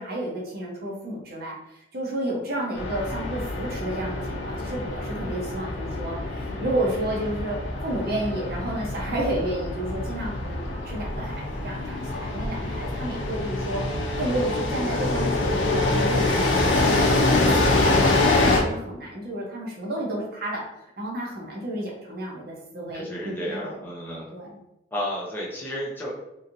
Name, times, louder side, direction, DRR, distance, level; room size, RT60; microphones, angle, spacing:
voice 1, 0.0-7.6 7.8-13.8 14.2-17.0 17.3-20.6 21.0-23.8 24.3-24.6, right 1 dB, 55° right, -2 dB, 0.8 m, -31 dB
sound 1, 2.8-18.6, left 2 dB, 80° left, 0.6 m, -25 dB
voice 2, 22.9-24.3 24.9-26.1, equal, 10° left, -5 dB, 0.6 m, -32 dB
3.0 x 2.7 x 2.6 m, 0.88 s
head